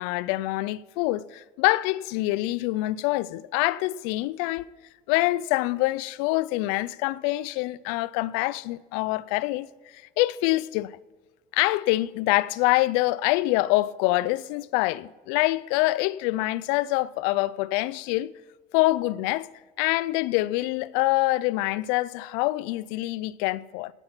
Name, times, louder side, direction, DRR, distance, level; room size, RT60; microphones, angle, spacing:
voice 1, 0.0-4.7 5.1-9.7 9.9-10.9 11.5-18.3 18.7-19.5 19.8-23.9, left 19 dB, 85° left, 0.4 m, -25 dB
17.0 x 5.9 x 5.6 m
cardioid pair, 115°, 19 cm